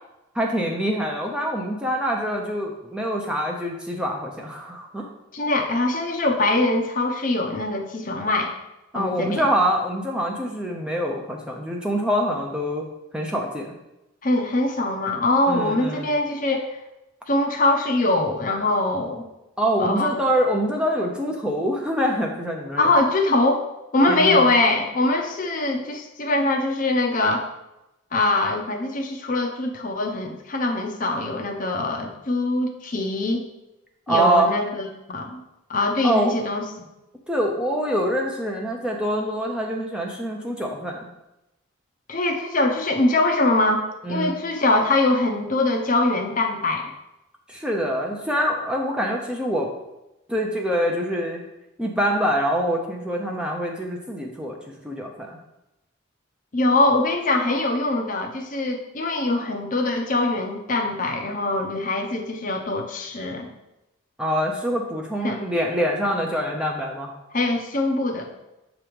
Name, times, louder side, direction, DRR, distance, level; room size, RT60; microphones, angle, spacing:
voice 1, 0.3-5.1 8.9-12.9 13.1-13.7 15.5-16.1 19.6-22.9 24.1-24.5 34.1-34.5 36.0-36.3 37.3-41.1 44.0-44.4 47.5-49.7 50.3-51.4 51.8-55.4 64.2-67.1, equal, 5° right, 0 dB, 0.6 m, -25 dB
voice 2, 5.3-8.5 8.9-9.5 14.2-16.8 17.3-19.3 19.8-20.1 22.8-23.7 23.9-27.4 28.1-33.4 34.1-35.4 35.7-36.9 42.1-43.8 44.1-46.9 56.5-63.5 65.2-65.4 67.3-68.3, left 2 dB, 40° left, 2 dB, 0.7 m, -23 dB
7.3 x 3.0 x 5.0 m, 0.93 s
head